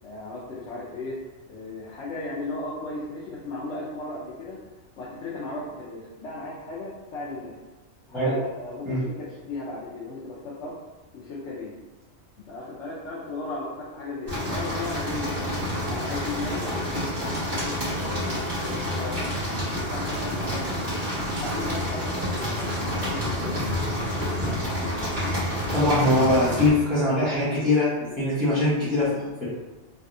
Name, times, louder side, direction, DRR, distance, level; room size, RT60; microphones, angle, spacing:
voice 1, 0.0-1.2 1.5-4.6 5.0-7.6 8.1-10.8 11.1-11.8 12.5-19.3 19.7-21.0 21.4-23.7, left 2 dB, 70° left, -6 dB, 0.9 m, -36 dB
sound 1, 14.3-26.7, equal, 40° right, 1.6 m, -28 dB
voice 2, 25.7-27.9 28.2-29.4, left 1 dB, ahead, -13 dB, 0.8 m, -22 dB
3.3 x 2.3 x 2.6 m, 1.2 s
omnidirectional pair, 1.3 m